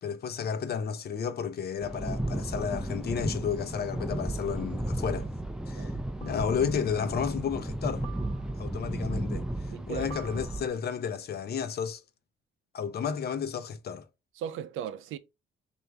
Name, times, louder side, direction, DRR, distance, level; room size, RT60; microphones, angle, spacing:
voice 1, 0.0-5.3 5.7-5.9 6.2-8.1 8.6-9.5 9.9-12.0 12.7-14.0, left 7 dB, 55° left, 0.7 m, -32 dB
sound 1, 1.8-10.7, right 1 dB, 5° right, 0.5 m, -34 dB
sound 2, 3.0-3.1 4.6-4.9 6.2-6.8 8.0-8.8 10.1-11.0, right 5 dB, 30° left, 1.0 m, -50 dB
voice 2, 9.7-10.1 14.4-15.2, right 9 dB, 85° right, 0.5 m, -37 dB
3.3 x 2.7 x 4.5 m
cardioid pair, 90°, 20 cm